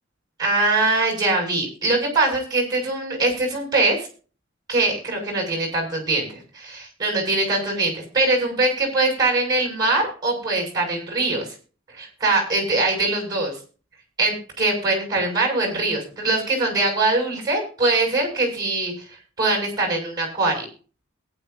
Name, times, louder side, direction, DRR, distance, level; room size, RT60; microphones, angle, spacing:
voice 1, 0.4-4.1 4.7-11.5 11.9-13.5 14.2-18.9 19.4-20.7, right 2 dB, 20° right, 2 dB, 7.0 m, -22 dB
22.0 x 9.9 x 2.8 m, 0.38 s
head